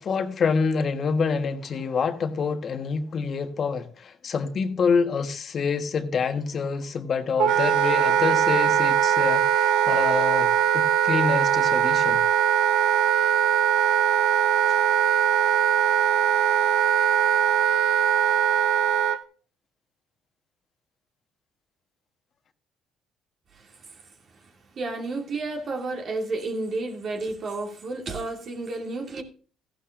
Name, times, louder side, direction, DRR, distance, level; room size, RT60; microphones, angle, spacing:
voice 1, 0.0-12.2, left 5 dB, 50° left, 1.3 m, -27 dB
Wind instrument woodwind instrument, 7.4-19.2, right 9 dB, 75° right, 0.8 m, -21 dB
voice 2, 23.5-24.0 24.8-29.2, right 2 dB, 55° right, 2.5 m, -31 dB
14.5 x 11.5 x 2.5 m
supercardioid pair, 65°, 0 cm